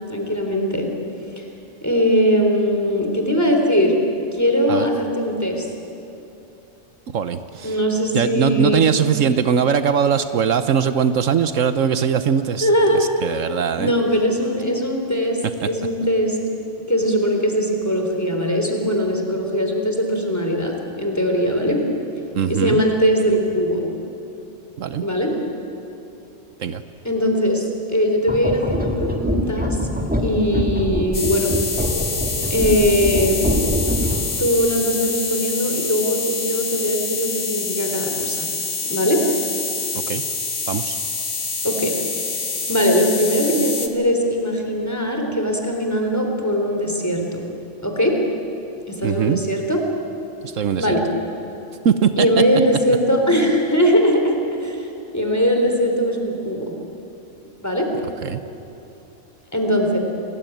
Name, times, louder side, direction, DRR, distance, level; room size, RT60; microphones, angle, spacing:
voice 1, 0.1-0.9 1.4-1.5 1.8-3.9 4.3-5.7 7.6-8.9 12.6-13.1 13.8-16.4 16.9-21.8 22.5-23.9 25.0-25.3 27.0-29.9 30.2-31.6 32.5-33.7 34.4-38.5 38.8-39.2 41.6-42.4 42.7-47.4 47.8-48.2 48.9-49.8 50.8-51.0 52.2-54.9 55.1-56.7 57.6-57.9 59.5-60.0, equal, 10° left, 2 dB, 3.6 m, -20 dB
voice 2, 7.1-7.7 8.1-12.7 13.2-13.9 22.3-22.8 24.8-25.0 26.6-26.8 40.1-40.2 40.7-41.0 49.0-49.4 50.4-51.0 51.8-52.3 53.3-53.5 58.2-58.4, right 7 dB, 75° right, 11 dB, 1.2 m, -20 dB
sound 1, 28.2-34.4, equal, 5° right, 1.8 m, -24 dB
sound 2, 31.1-43.9, left 4 dB, 50° left, 1.9 m, -26 dB
28.5 x 20.0 x 9.2 m, 2.9 s
omnidirectional pair, 1.4 m